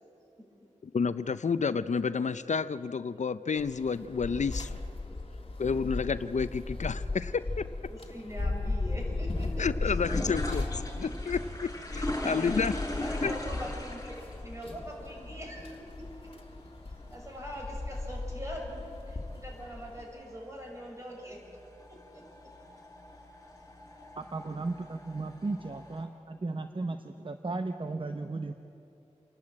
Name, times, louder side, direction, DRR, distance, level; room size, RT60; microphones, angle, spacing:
voice 1, 0.8-4.7 5.6-7.7 9.6-12.7 13.2-13.3, left 5 dB, 70° left, 15 dB, 0.5 m, -30 dB
sound 1, 3.6-20.0, left 2 dB, 45° left, 1.9 m, -37 dB
sound 2, 7.8-26.0, left 1 dB, 25° left, 6.6 m, -41 dB
voice 2, 7.9-9.9 11.4-11.5 12.8-14.2 14.4-16.3 16.8-21.4 21.9-22.5, equal, 25° right, -1 dB, 6.2 m, -43 dB
voice 3, 24.2-28.5, right 3 dB, 45° right, 7 dB, 0.8 m, -35 dB
28.0 x 11.5 x 8.8 m, 2.9 s
wide cardioid pair, 55°, 13 cm